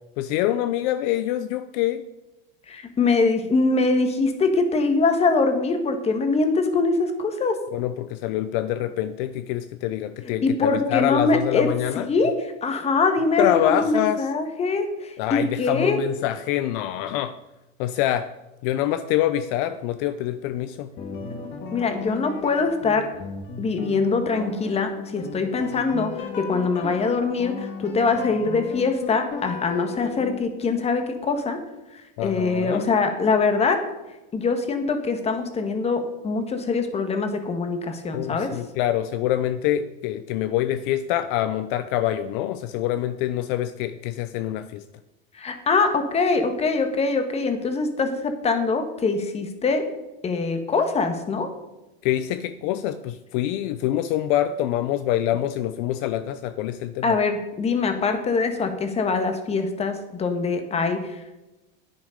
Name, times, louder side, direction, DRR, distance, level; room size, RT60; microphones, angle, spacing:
voice 1, 0.2-2.0 7.7-12.1 13.4-14.3 15.2-17.3 17.8-18.3 18.6-20.9 32.2-32.9 38.1-44.8 52.0-57.2, left 12 dB, 60° left, 12 dB, 0.7 m, -25 dB
voice 2, 2.7-7.5 10.4-11.7 12.0-12.4 12.6-16.0 21.7-23.1 23.6-31.6 32.2-33.8 34.3-38.5 45.4-49.8 50.2-51.5 57.0-61.2, left 4 dB, 20° left, 7 dB, 1.6 m, -23 dB
sound 1, 21.0-30.4, left 4 dB, 35° left, 2.0 m, -35 dB
10.5 x 9.6 x 5.1 m, 1.0 s
supercardioid pair, 145°, 30 cm